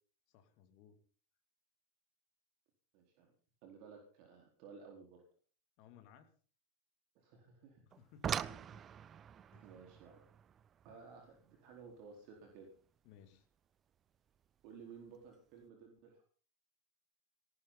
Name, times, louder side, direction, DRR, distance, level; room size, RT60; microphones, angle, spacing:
voice 1, 0.3-1.0 5.8-6.3 7.8-8.8 9.5-9.7 13.0-13.4, left 8 dB, 45° left, 7 dB, 2.4 m, -61 dB
voice 2, 2.9-3.3 3.6-5.2 7.1-7.8 9.6-10.3 10.8-12.7 14.6-16.2, right 5 dB, 45° right, 1 dB, 4.3 m, -55 dB
sound 1, 7.9-13.0 14.4-14.5 15.1-15.3 15.6-15.7, right 9 dB, 25° right, 0.7 m, -44 dB
19.0 x 18.5 x 4.1 m, 0.42 s
figure-of-eight pair, 90°, 0 cm